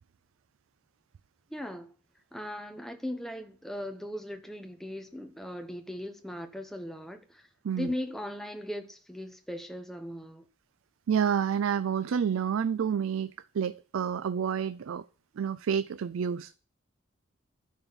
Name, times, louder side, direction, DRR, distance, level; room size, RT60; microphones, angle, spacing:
voice 1, 1.5-1.9 2.3-7.5 7.7-10.4, left 1 dB, ahead, 0.9 m, -38 dB
voice 2, 11.1-15.1 15.4-16.6, right 7 dB, 80° right, 0.4 m, -29 dB
10.5 x 4.4 x 7.0 m
head